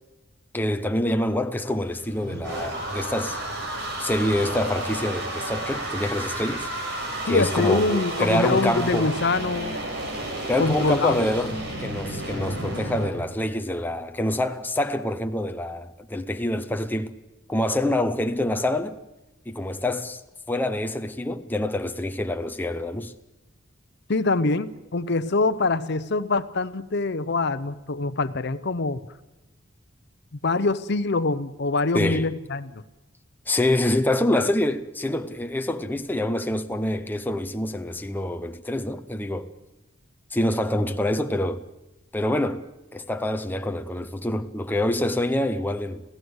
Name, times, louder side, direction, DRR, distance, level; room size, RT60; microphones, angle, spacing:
voice 1, 0.5-3.4 4.0-6.7 7.2-9.1 10.5-17.1 17.5-19.0 19.5-20.2 20.5-23.1 31.9-32.3 33.5-39.5 40.3-41.6 42.1-42.7 42.9-46.0, left 1 dB, 10° left, 0.7 m, -26 dB
sound 1, 1.9-13.1, right 1 dB, 55° right, 4.5 m, -32 dB
voice 2, 7.3-9.8 10.6-11.2 24.1-29.0 30.4-32.8, left 3 dB, 55° left, 0.7 m, -24 dB
26.5 x 16.5 x 8.0 m
head